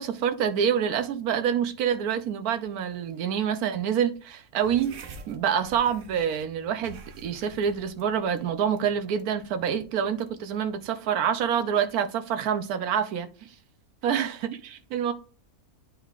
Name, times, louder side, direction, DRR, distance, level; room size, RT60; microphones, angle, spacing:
voice 1, 0.0-5.0 5.3-13.5 14.0-15.1, right 8 dB, 90° right, 1.2 m, -27 dB
sound 1, 4.6-11.5, right 4 dB, 65° right, 1.0 m, -48 dB
10.0 x 4.6 x 2.4 m
omnidirectional pair, 1.5 m